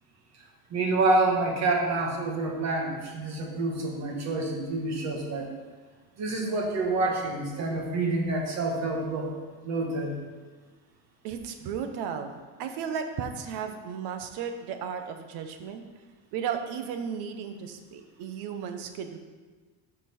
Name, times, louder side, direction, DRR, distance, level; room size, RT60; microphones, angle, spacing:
voice 1, 0.7-5.5 6.2-9.3 9.6-10.2, right 2 dB, 40° right, 0 dB, 1.6 m, -27 dB
voice 2, 11.2-15.8 16.3-19.2, right 7 dB, 65° right, 7 dB, 1.0 m, -34 dB
12.5 x 4.4 x 4.3 m, 1.4 s
cardioid pair, 170°, 44 cm